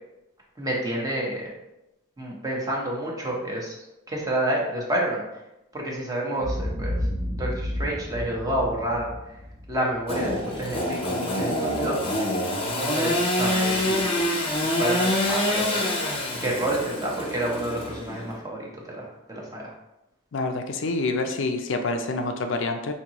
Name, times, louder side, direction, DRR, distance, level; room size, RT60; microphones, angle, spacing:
voice 1, 0.6-1.5 2.2-3.8 4.1-5.2 5.7-7.0 7.4-9.1 9.7-12.3 12.8-14.0 14.6-15.9 16.4-18.7 18.9-19.7, right 1 dB, 20° right, -3 dB, 0.9 m, -29 dB
Boom, 6.4-10.7, left 1 dB, 85° right, 1.2 m, -31 dB
Engine / Sawing, 10.1-18.3, left 1 dB, 25° left, 0.7 m, -26 dB
voice 2, 20.3-22.9, left 3 dB, 65° left, 5 dB, 0.4 m, -27 dB
5.2 x 2.7 x 2.9 m, 0.91 s
head